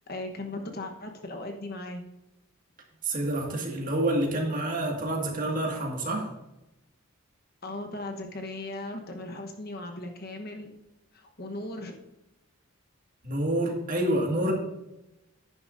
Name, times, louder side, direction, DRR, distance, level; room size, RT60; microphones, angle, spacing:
voice 1, 0.1-2.0 7.6-10.7 11.1-11.9, left 2 dB, 45° left, 4 dB, 1.1 m, -37 dB
voice 2, 3.0-6.3 13.2-14.5, right 1 dB, 40° right, 0 dB, 2.0 m, -28 dB
10.5 x 10.0 x 2.6 m, 0.95 s
head